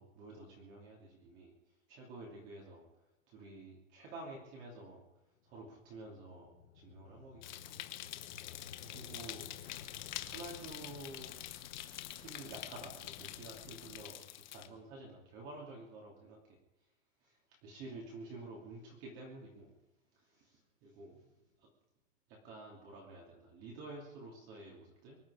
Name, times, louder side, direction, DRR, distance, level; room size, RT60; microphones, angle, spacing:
voice 1, 0.0-1.5 1.9-2.9 3.3-5.0 5.4-7.8 8.9-9.5 10.2-11.4 12.2-16.6 17.2-19.7 20.1-21.7 22.3-25.2, right 2 dB, 25° right, -2 dB, 2.9 m, -50 dB
sound 1, 5.4-15.7, left 7 dB, 55° left, 1.7 m, -57 dB
sound 2, 7.4-14.7, left 14 dB, 35° left, 1.0 m, -46 dB
sound 3, 9.7-14.1, left 11 dB, 90° left, 1.3 m, -57 dB
24.0 x 11.0 x 5.0 m, 0.98 s
supercardioid pair, 180°, 40 cm